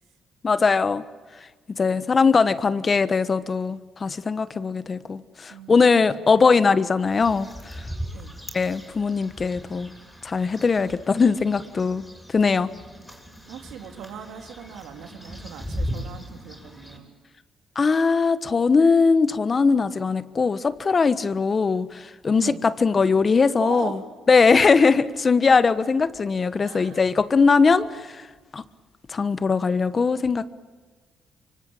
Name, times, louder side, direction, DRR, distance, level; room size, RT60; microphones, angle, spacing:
voice 1, 0.4-1.0 1.8-7.8 8.5-9.9 10.2-12.0 12.3-12.7 17.7-23.9 24.3-28.3 28.5-28.6 29.1-30.5, left 4 dB, 35° left, 1.2 m, -20 dB
voice 2, 5.5-6.4 8.1-8.3 13.5-17.1 22.3-22.7 23.6-24.0 26.6-27.0, right 8 dB, 85° right, 3.4 m, -39 dB
sound 1, 7.0-17.0, equal, 5° left, 6.8 m, -38 dB
24.5 x 24.5 x 8.9 m
cardioid pair, 90°, 0 cm